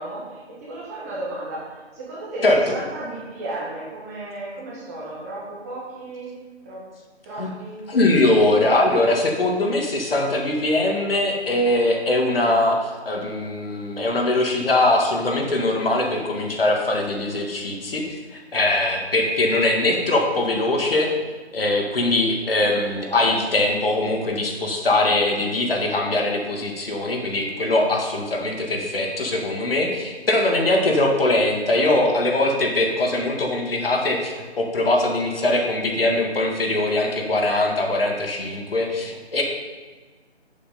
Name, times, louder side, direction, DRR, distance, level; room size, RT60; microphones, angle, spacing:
voice 1, 0.0-6.3 6.6-6.8 7.2-7.9 23.1-23.2, right 2 dB, 15° right, -6 dB, 1.3 m, -34 dB
voice 2, 7.9-21.1 21.5-39.4, left 2 dB, 55° left, 1 dB, 1.9 m, -21 dB
7.8 x 7.2 x 5.4 m, 1.4 s
figure-of-eight pair, 155°, 34 cm